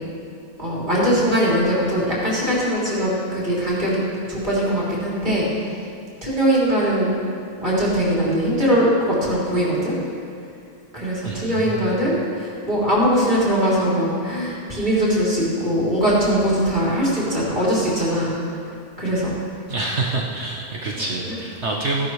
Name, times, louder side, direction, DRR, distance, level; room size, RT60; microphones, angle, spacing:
voice 1, 0.6-4.0 4.3-5.5 6.2-7.1 7.6-10.0 10.9-18.3 19.0-19.3 20.9-21.4, equal, 30° right, -8 dB, 3.6 m, -21 dB
voice 2, 11.2-12.0 19.7-22.1, right 3 dB, 50° right, -2 dB, 1.2 m, -27 dB
16.0 x 12.0 x 3.2 m, 2.4 s
omnidirectional pair, 1.6 m